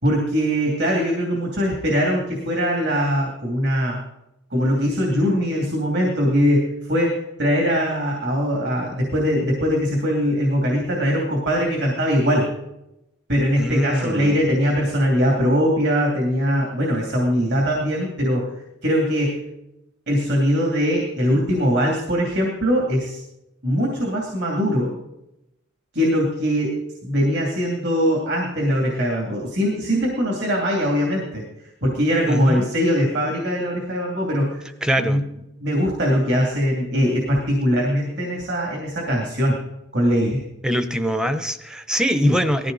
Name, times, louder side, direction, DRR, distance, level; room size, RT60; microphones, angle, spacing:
voice 1, 0.0-4.0 4.5-12.5 13.3-18.5 18.8-19.5 20.1-23.2 23.6-24.9 25.9-31.4 31.8-34.7 35.0-35.3 35.6-39.6 39.9-40.4 42.2-42.4, equal, 50° right, -1 dB, 2.8 m, -21 dB
voice 2, 13.5-14.3 32.3-32.6 34.8-35.2 40.6-42.7, equal, 5° right, 9 dB, 0.8 m, -22 dB
19.0 x 14.5 x 4.1 m, 0.90 s
head